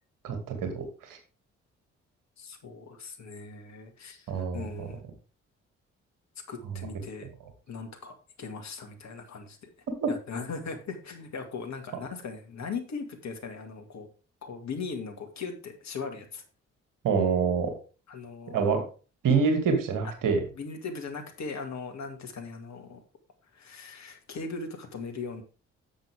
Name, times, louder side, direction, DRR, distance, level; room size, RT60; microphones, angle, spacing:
voice 1, 0.2-1.2 4.3-4.9 6.6-6.9 10.0-10.1 17.0-17.7 18.5-18.8 19.2-20.4, right 5 dB, 60° right, 5 dB, 2.6 m, -26 dB
voice 2, 2.4-5.0 6.5-7.3 7.7-9.7 10.1-14.1 14.4-16.4 18.1-18.8 20.6-23.0 23.5-25.4, left 4 dB, 50° left, 4 dB, 2.1 m, -39 dB
10.5 x 7.2 x 3.6 m, 0.35 s
figure-of-eight pair, 40°, 36 cm